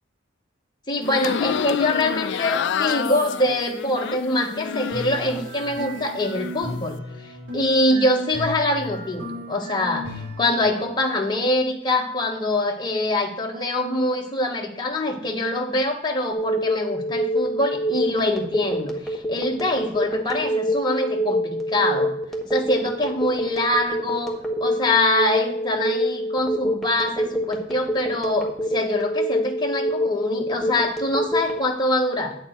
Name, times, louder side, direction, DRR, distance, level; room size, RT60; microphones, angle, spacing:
voice 1, 0.9-22.1 22.4-24.3 24.6-32.3, left 1 dB, 20° left, 0 dB, 1.4 m, -24 dB
sound 1, 1.0-5.5 5.8-6.5, left 7 dB, 60° left, 0.4 m, -28 dB
sound 2, 4.2-10.7, equal, 70° right, 4.8 m, -35 dB
Telephone, 16.3-31.6, equal, ahead, 1.4 m, -25 dB
9.1 x 8.8 x 4.5 m, 0.74 s
head